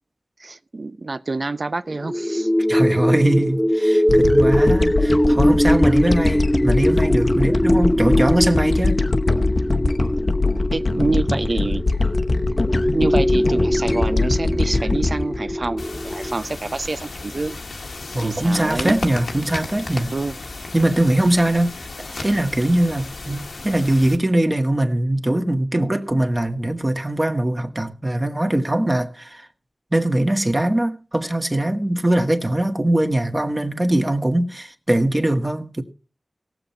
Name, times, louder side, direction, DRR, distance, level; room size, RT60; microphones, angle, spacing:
voice 1, 0.4-2.5 6.1-6.2 10.7-11.9 12.9-17.6 18.2-19.0 20.1-20.4, right 3 dB, 55° right, 0.5 m, -26 dB
sound 1, 2.0-16.3, equal, 10° left, 0.8 m, -21 dB
voice 2, 2.7-9.0 18.1-20.1 20.7-21.9 22.2-29.5 29.9-35.8, right 1 dB, 30° right, 1.7 m, -21 dB
sound 2, 4.1-16.6, left 3 dB, 55° left, 0.9 m, -22 dB
sound 3, 15.8-24.2, left 3 dB, 85° left, 1.5 m, -34 dB
18.0 x 7.1 x 4.4 m
wide cardioid pair, 50°, 0 cm